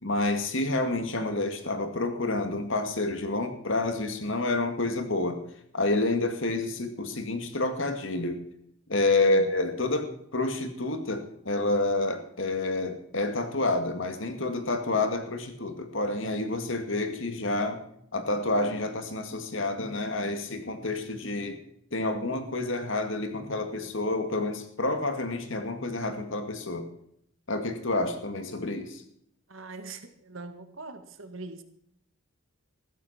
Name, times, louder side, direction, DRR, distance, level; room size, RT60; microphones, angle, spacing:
voice 1, 0.0-5.4 5.7-8.4 8.9-17.8 18.1-21.6 21.9-26.9 27.5-29.0, left 2 dB, 60° left, 7 dB, 2.2 m, -29 dB
voice 2, 29.5-31.6, right 3 dB, 65° right, 8 dB, 1.8 m, -42 dB
15.0 x 13.5 x 4.4 m, 0.70 s
head